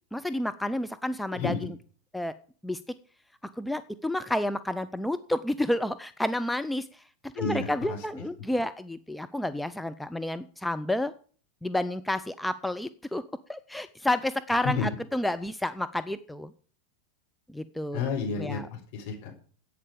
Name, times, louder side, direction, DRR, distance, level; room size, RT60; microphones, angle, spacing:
voice 1, 0.1-1.7 2.1-2.3 2.6-2.8 3.6-11.1 11.6-13.2 13.5-16.5 17.5-18.0 18.4-18.7, left 1 dB, 5° left, 11 dB, 0.6 m, -30 dB
voice 2, 7.3-8.0 14.6-14.9 17.9-19.3, left 4 dB, 55° left, 3 dB, 4.0 m, -31 dB
11.0 x 8.7 x 5.0 m, 0.42 s
figure-of-eight pair, 90°, 0 cm